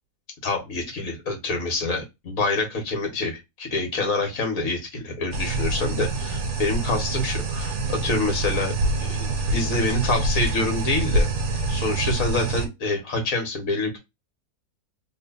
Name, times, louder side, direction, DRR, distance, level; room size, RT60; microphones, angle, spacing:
voice 1, 0.4-8.7 9.0-11.3 11.7-14.0, left 2 dB, 60° left, 3 dB, 1.8 m, -26 dB
sound 1, 5.3-12.7, right 2 dB, 65° right, 1.5 m, -26 dB
3.2 x 3.2 x 2.7 m, 0.21 s
omnidirectional pair, 1.6 m